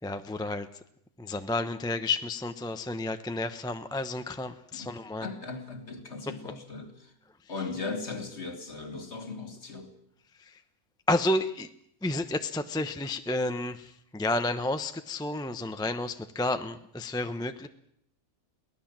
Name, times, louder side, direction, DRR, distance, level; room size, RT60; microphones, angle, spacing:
voice 1, 0.0-0.7 1.2-5.3 10.4-10.6 11.1-11.7 12.0-17.7, left 2 dB, 5° left, 9 dB, 0.6 m, -31 dB
voice 2, 4.7-7.1 7.5-9.9, left 4 dB, 45° left, 7 dB, 2.7 m, -38 dB
23.5 x 18.0 x 7.5 m, 0.69 s
omnidirectional pair, 1.6 m